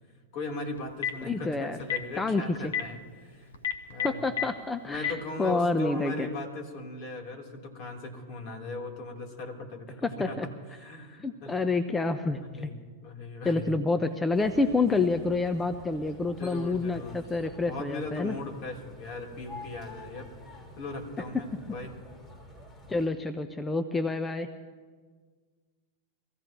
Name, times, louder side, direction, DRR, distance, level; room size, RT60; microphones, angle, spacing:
voice 1, 0.3-3.5 3.9-4.2 4.8-11.6 12.4-13.8 15.0-15.1 15.9-17.2 17.5-20.3 20.8-22.0, left 2 dB, 55° left, 0 dB, 3.4 m, -39 dB
Telephone, 0.8-1.2 1.8-2.0 2.6-2.8 3.5-4.4 4.9-5.1, left 9 dB, 80° left, 1.3 m, -28 dB
voice 2, 1.2-1.8 2.2-2.7 4.0-6.3 10.0-10.5 11.2-12.7 13.4-18.4 22.9-24.5, left 3 dB, 15° left, 9 dB, 0.7 m, -28 dB
sound 1, 14.3-23.1, left 1 dB, 30° left, 3.4 m, -48 dB
24.0 x 15.5 x 3.0 m, 1.5 s
hypercardioid pair, 100°, 0 cm